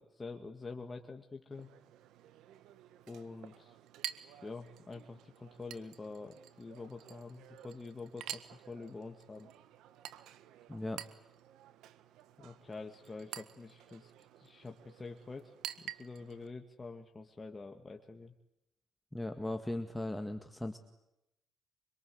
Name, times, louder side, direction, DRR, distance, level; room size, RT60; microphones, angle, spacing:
voice 1, 0.0-1.7 3.1-3.8 4.4-9.5 12.4-18.3, left 3 dB, 25° left, 3 dB, 2.3 m, -47 dB
Chink clink, 1.5-16.5, right 12 dB, 90° right, 1.5 m, -50 dB
voice 2, 10.7-11.0 19.1-20.8, left 1 dB, 5° left, 6 dB, 2.0 m, -38 dB
25.5 x 24.5 x 8.1 m, 0.88 s
cardioid pair, 90°, 0 cm